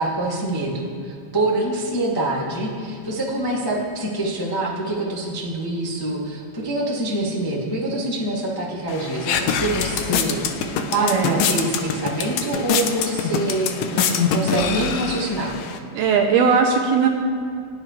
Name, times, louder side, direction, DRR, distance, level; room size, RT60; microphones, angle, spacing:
voice 1, 0.0-15.5, right 2 dB, 10° left, -5 dB, 0.9 m, -25 dB
sound 1, 8.9-15.8, left 6 dB, 85° left, 1.9 m, -24 dB
voice 2, 11.0-11.4 15.9-17.1, right 6 dB, 75° right, 2 dB, 2.5 m, -18 dB
28.5 x 11.5 x 3.4 m, 2.3 s
omnidirectional pair, 5.2 m